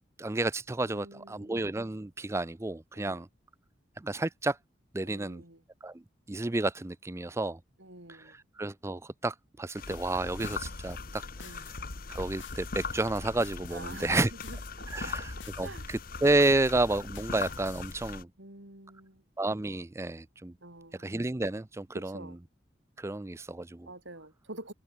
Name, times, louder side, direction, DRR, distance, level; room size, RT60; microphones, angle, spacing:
voice 1, 0.2-3.3 4.0-4.6 4.9-5.4 5.8-6.0 6.3-7.6 8.1-11.6 12.1-14.3 14.9-15.3 15.6-18.3 19.4-20.5 21.0-22.2 23.0-23.9, right 2 dB, 15° right, 0.4 m, -31 dB
voice 2, 0.8-1.5 3.0-3.2 5.0-5.6 7.8-8.4 11.4-11.6 13.7-15.9 18.4-19.2 20.6-21.2 21.9-22.4 23.9-24.7, right 2 dB, 75° right, 5.4 m, -47 dB
sound 1, 9.7-18.2, left 4 dB, 50° left, 1.1 m, -40 dB
sound 2, 9.9-17.9, left 3 dB, 80° left, 2.3 m, -47 dB
head